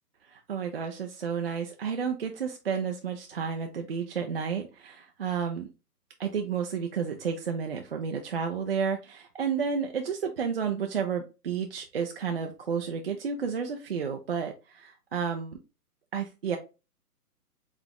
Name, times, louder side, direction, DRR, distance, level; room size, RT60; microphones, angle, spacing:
voice 1, 0.3-5.7 6.2-15.6 16.1-16.6, right 6 dB, 40° right, 3 dB, 0.5 m, -31 dB
4.1 x 3.5 x 2.9 m, 0.29 s
hypercardioid pair, 150°, 47 cm